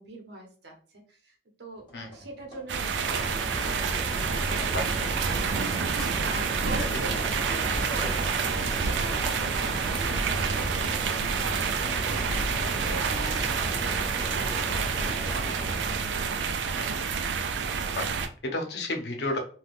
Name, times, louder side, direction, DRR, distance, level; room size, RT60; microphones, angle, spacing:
voice 1, 0.0-4.0 4.5-4.7 6.1-7.1 7.4-16.5, right 2 dB, 70° right, 2 dB, 0.8 m, -43 dB
sound 1, 1.7-3.2 3.5-4.9 5.3-8.2, equal, 30° left, 1.3 m, -53 dB
sound 2, 2.7-18.3, right 5 dB, 90° right, 0.4 m, -28 dB
sound 3, 3.0-16.1, right 1 dB, 5° left, 0.4 m, -36 dB
voice 2, 6.8-7.2 16.8-17.1 17.9-19.4, left 1 dB, 70° left, 3 dB, 0.7 m, -32 dB
3.3 x 2.3 x 2.4 m, 0.42 s
head